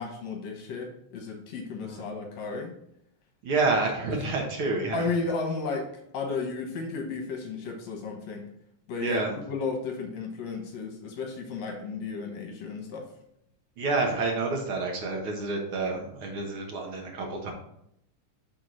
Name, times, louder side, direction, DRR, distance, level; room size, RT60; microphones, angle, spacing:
voice 1, 0.0-2.7 4.9-5.9 6.1-8.5 8.9-13.1, left 4 dB, 65° left, 1 dB, 2.1 m, -33 dB
voice 2, 3.4-5.0 9.0-9.3 13.8-17.5, right 3 dB, 55° right, 1 dB, 1.6 m, -28 dB
6.5 x 3.6 x 6.1 m, 0.75 s
omnidirectional pair, 3.6 m